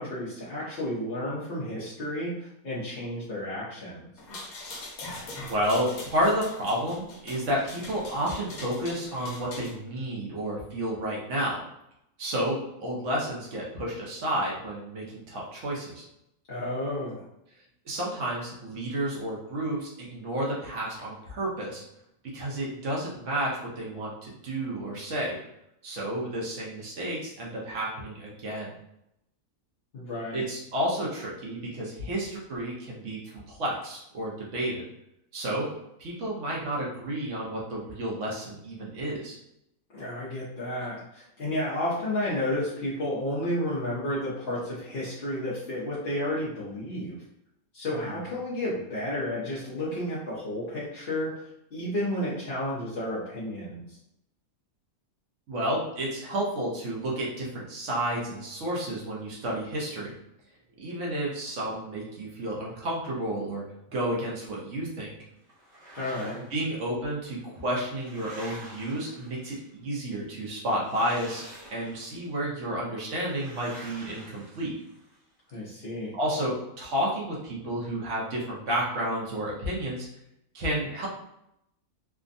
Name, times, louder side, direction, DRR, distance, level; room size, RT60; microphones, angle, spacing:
voice 1, 0.0-4.1 16.5-17.2 29.9-30.4 39.9-47.2 47.7-51.4 51.7-54.0 66.0-66.4 75.5-76.1, left 1 dB, 45° left, -9 dB, 0.8 m, -32 dB
sound 1, 4.2-9.7, left 2 dB, 80° left, 1.2 m, -42 dB
voice 2, 5.5-11.6 12.2-16.0 17.9-21.8 22.3-25.4 25.8-28.7 30.3-34.8 35.3-35.7 36.0-39.4 48.0-48.1 55.5-60.2 60.8-63.6 63.9-65.1 66.4-71.4 71.7-74.8 76.1-80.1 80.5-81.1, right 1 dB, 60° right, -4 dB, 1.0 m, -31 dB
sound 2, 65.5-66.7 67.5-69.7 70.8-72.2 73.3-75.2, right 1 dB, 30° right, 1.1 m, -47 dB
3.4 x 2.1 x 2.5 m, 0.81 s
omnidirectional pair, 1.5 m